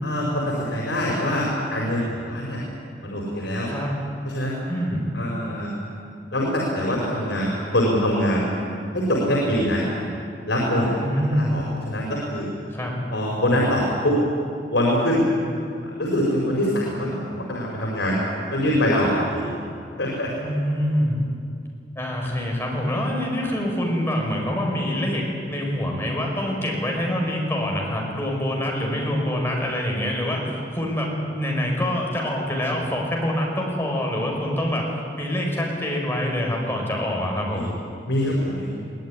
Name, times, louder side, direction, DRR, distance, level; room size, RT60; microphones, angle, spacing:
voice 1, 0.0-2.6 3.0-3.7 4.2-4.6 5.1-5.7 6.3-8.5 8.9-9.9 10.5-11.0 11.3-12.5 13.1-14.2 14.7-15.2 15.8-18.2 18.5-19.5 20.0-20.3 37.5-37.6 38.1-38.7, equal, 85° left, -3 dB, 4.7 m, -24 dB
voice 2, 3.7-4.0 4.7-5.1 10.7-11.6 12.7-13.0 20.4-21.2 22.0-34.9 35.2-37.7, equal, 15° left, -1 dB, 5.3 m, -25 dB
22.5 x 17.5 x 9.9 m, 2.5 s
head